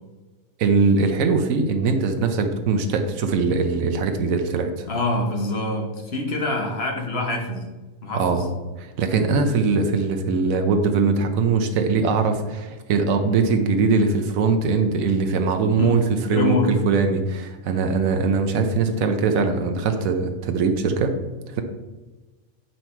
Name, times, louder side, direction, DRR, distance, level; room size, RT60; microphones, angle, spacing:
voice 1, 0.6-4.9 8.1-8.5 8.8-16.6 16.8-21.1 21.5-21.6, right 4 dB, 85° right, 6 dB, 1.2 m, -21 dB
voice 2, 4.9-7.7 8.0-8.5 15.8-16.0 16.3-16.8, left 2 dB, 50° left, 2 dB, 1.4 m, -25 dB
7.7 x 5.4 x 4.4 m, 1.2 s
omnidirectional pair, 1.4 m